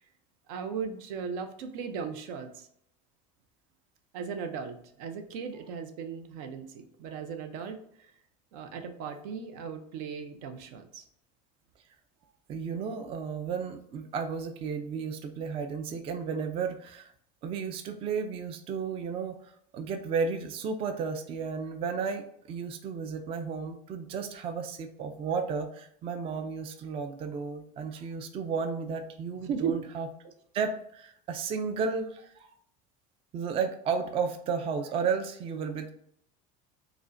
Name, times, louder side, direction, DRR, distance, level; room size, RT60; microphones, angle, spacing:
voice 1, 0.5-2.7 4.1-7.8 8.5-11.0 29.5-29.8, right 6 dB, 75° right, 8 dB, 0.6 m, -36 dB
voice 2, 12.5-17.1 17.4-32.5 33.3-35.9, right 5 dB, 30° right, 6 dB, 0.3 m, -33 dB
4.9 x 2.1 x 2.5 m, 0.68 s
cardioid pair, 140°, 19 cm